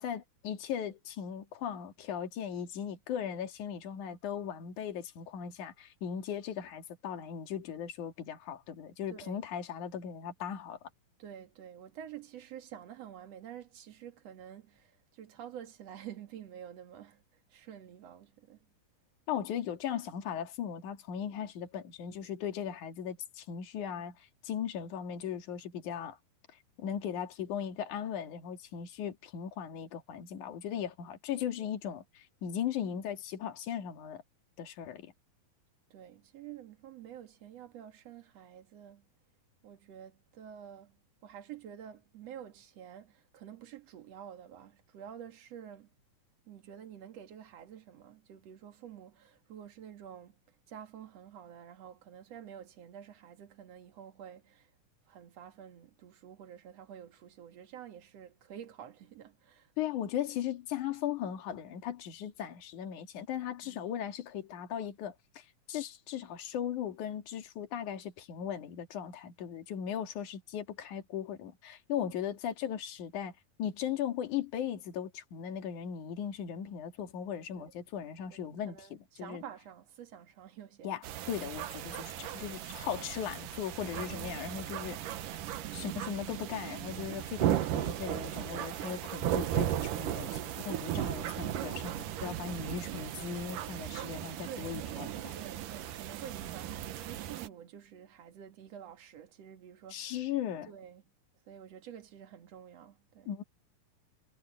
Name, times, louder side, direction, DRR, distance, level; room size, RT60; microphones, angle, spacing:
voice 1, 0.0-10.8 19.3-26.2 26.8-34.2 34.6-35.1 59.8-73.3 73.6-78.8 79.2-79.4 80.8-85.0 85.7-95.3 99.9-100.7 103.3-103.4, left 9 dB, 60° left, 3.4 m, -38 dB
voice 2, 9.1-9.4 11.2-17.2 17.5-18.6 35.9-39.1 39.6-45.9 46.5-50.4 50.7-54.7 55.1-59.7 63.6-63.9 77.6-77.7 78.3-78.4 78.7-80.9 84.1-84.3 90.2-90.5 94.4-94.8 95.3-100.2 100.7-101.0 101.5-103.3, right 9 dB, 50° right, 2.7 m, -49 dB
sound 1, 81.0-97.5, right 12 dB, 70° right, 2.6 m, -36 dB
omnidirectional pair, 4.2 m